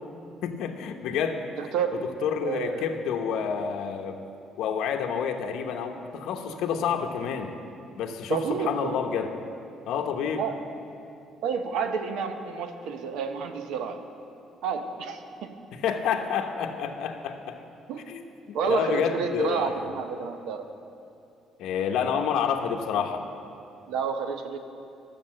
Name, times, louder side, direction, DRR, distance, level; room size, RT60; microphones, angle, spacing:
voice 1, 0.4-1.4 2.2-4.2 4.6-7.5 8.0-9.3 9.9-10.4 15.8-17.6 18.1-18.2 18.6-19.8 21.6-23.2, left 7 dB, 80° left, 3 dB, 0.9 m, -28 dB
voice 2, 1.6-2.1 2.4-2.9 6.5-6.6 8.3-9.0 10.4-10.6 11.4-14.0 14.6-15.5 17.9-18.1 18.5-20.7 23.9-24.6, right 6 dB, 85° right, 7 dB, 0.9 m, -30 dB
12.0 x 6.7 x 7.5 m, 2.6 s
cardioid pair, 145°, 0 cm